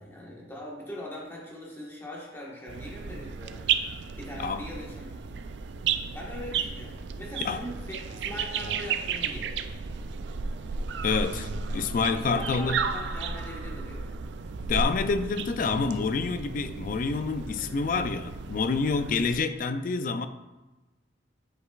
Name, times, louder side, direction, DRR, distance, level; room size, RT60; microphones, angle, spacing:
voice 1, 0.0-3.6 4.2-5.1 6.1-9.6 12.1-14.1, left 1 dB, 15° left, -5 dB, 1.4 m, -41 dB
sound 1, 2.7-19.4, right 5 dB, 75° right, 0.4 m, -33 dB
voice 2, 11.0-12.8 14.7-20.3, left 4 dB, 50° left, 10 dB, 0.4 m, -28 dB
8.0 x 5.1 x 2.4 m, 1.1 s
head